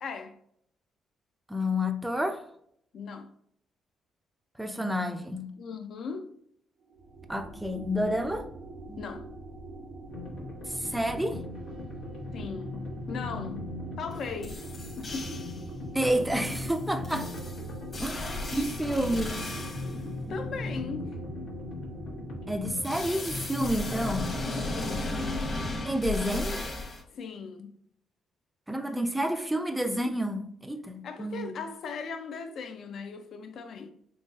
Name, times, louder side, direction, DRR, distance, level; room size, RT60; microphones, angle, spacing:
voice 1, 0.0-0.4 2.9-3.3 5.6-6.4 9.0-9.3 12.3-14.6 15.0-15.4 20.3-21.2 24.6-25.5 27.1-27.8 31.0-33.9, left 5 dB, 65° left, 0.4 m, -38 dB
voice 2, 1.5-2.4 4.6-5.5 7.3-8.5 8.9-9.0 10.8-11.4 15.9-17.3 18.0-19.3 22.5-24.3 25.8-26.6 28.7-31.5, equal, 5° right, 0.4 m, -29 dB
sound 1, 6.8-22.7, right 2 dB, 65° right, 0.5 m, -44 dB
sound 2, 10.1-25.9, left 2 dB, 85° left, 1.0 m, -39 dB
sound 3, 14.1-14.2 14.4-15.6 16.0-20.0 22.8-27.0, left 2 dB, 35° left, 1.0 m, -36 dB
3.9 x 3.0 x 2.3 m
cardioid pair, 100°, 0 cm